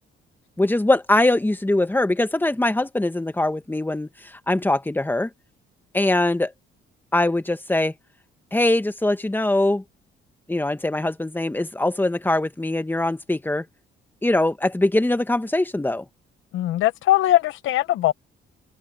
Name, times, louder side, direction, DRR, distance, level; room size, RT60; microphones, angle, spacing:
voice 1, 0.6-5.3 5.9-6.5 7.1-7.9 8.5-9.8 10.5-13.6 14.2-16.0, left 1 dB, 10° left, 1.7 m, -22 dB
voice 2, 16.5-18.1, left 14 dB, 85° left, 1.0 m, -20 dB
cardioid pair, 90°, 20 cm